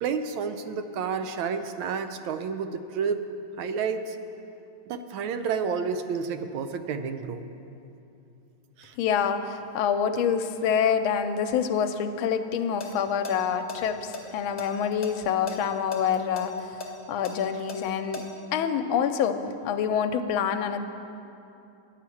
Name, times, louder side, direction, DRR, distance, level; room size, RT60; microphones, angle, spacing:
voice 1, 0.0-3.3 3.6-4.2 4.9-7.4 8.8-8.9, right 6 dB, 80° right, 9 dB, 1.4 m, -30 dB
voice 2, 9.0-16.8 17.1-18.2 18.5-20.8, left 7 dB, 85° left, 8 dB, 1.4 m, -26 dB
sound 1, 12.6-12.9 13.2-13.3 13.7-15.1 15.5-15.6 15.9-18.2, left 4 dB, 35° left, 0.7 m, -37 dB
10.0 x 5.8 x 8.4 m, 2.8 s
omnidirectional pair, 2.2 m